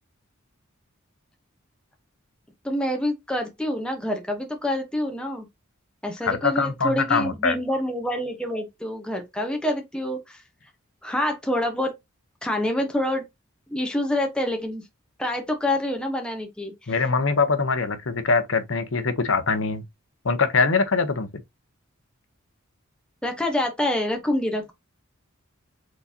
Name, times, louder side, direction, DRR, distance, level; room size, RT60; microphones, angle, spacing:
voice 1, 2.6-5.5 6.0-10.4 11.0-11.9 12.4-13.3 13.7-14.8 15.2-16.7 23.2-24.7, left 1 dB, 5° left, 1.0 m, -26 dB
voice 2, 6.2-7.6 16.9-19.8 20.2-21.3, left 4 dB, 65° left, 0.9 m, -23 dB
4.7 x 4.0 x 2.8 m
head